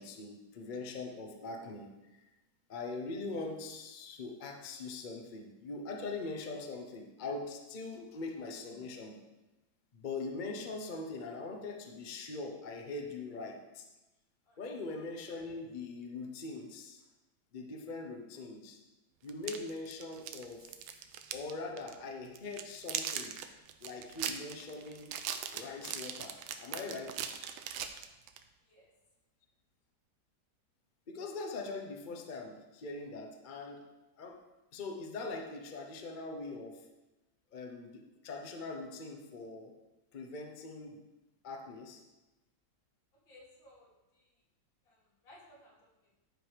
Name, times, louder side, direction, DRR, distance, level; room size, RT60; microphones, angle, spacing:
voice 1, 0.0-2.2 2.7-9.2 9.9-13.9 14.6-17.0 17.5-18.8 19.2-20.7 21.3-23.4 23.8-25.1 25.5-27.3 31.1-33.9 34.2-34.4 34.7-36.8 37.5-39.7 40.1-41.0 41.4-42.0, left 3 dB, 45° left, 3 dB, 0.6 m, -42 dB
sound 1, 19.3-21.5 21.8-22.0 22.3-28.4, right 9 dB, 90° right, 1.4 m, -39 dB
voice 2, 28.6-28.9 43.3-44.4 44.8-46.1, left 1 dB, 70° left, -4 dB, 2.8 m, -60 dB
10.5 x 4.8 x 5.0 m, 1.0 s
omnidirectional pair, 2.2 m